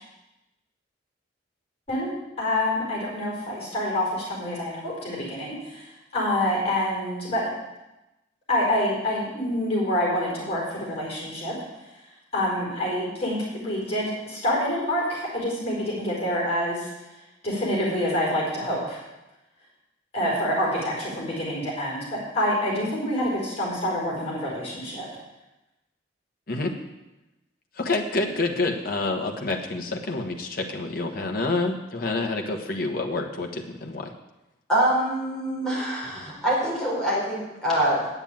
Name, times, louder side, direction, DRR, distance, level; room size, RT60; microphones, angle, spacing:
voice 1, 2.4-5.8 6.1-7.5 8.5-11.6 12.3-16.9 17.4-19.0 20.1-25.1, left 1 dB, 30° left, -3 dB, 4.7 m, -27 dB
voice 2, 27.8-34.1, left 2 dB, 50° left, 2 dB, 1.3 m, -28 dB
voice 3, 34.7-38.1, right 1 dB, 5° left, -7 dB, 4.6 m, -25 dB
9.2 x 8.0 x 8.7 m, 1.0 s
head